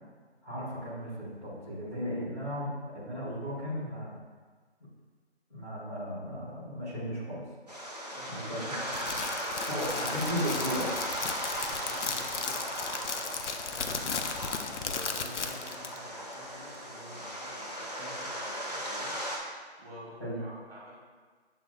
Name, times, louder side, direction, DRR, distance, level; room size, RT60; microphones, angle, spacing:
voice 1, 0.4-4.1 5.5-7.4 8.3-8.6 9.7-11.0 20.2-20.4, equal, 25° left, -13 dB, 1.3 m, -35 dB
sound 1, 7.7-19.4, equal, 35° right, 0.6 m, -37 dB
voice 2, 8.1-9.9 11.7-14.2 14.8-19.2 19.8-20.9, equal, 60° right, -4 dB, 1.5 m, -48 dB
Crackle, 8.8-16.0, left 5 dB, 90° left, 0.5 m, -36 dB
7.6 x 2.8 x 2.2 m, 1.5 s
figure-of-eight pair, 180°, 34 cm